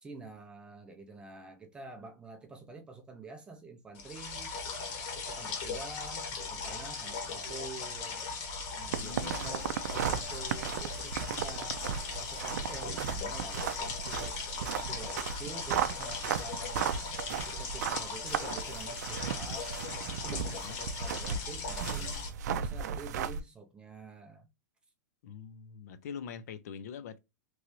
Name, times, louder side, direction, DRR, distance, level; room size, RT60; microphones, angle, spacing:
voice 1, 0.0-4.5 5.1-8.2 8.7-11.9 12.2-14.4 14.7-16.9 17.3-19.7 20.2-22.3 22.6-24.5, right 3 dB, 10° right, 0.5 m, -48 dB
sound 1, 3.9-22.3, left 4 dB, 45° left, 1.2 m, -38 dB
sound 2, 8.9-23.4, right 8 dB, 70° right, 0.4 m, -36 dB
voice 2, 9.0-9.7 20.6-20.8 25.2-27.2, left 7 dB, 60° left, 0.5 m, -44 dB
3.1 x 2.5 x 3.0 m
supercardioid pair, 155°, 9 cm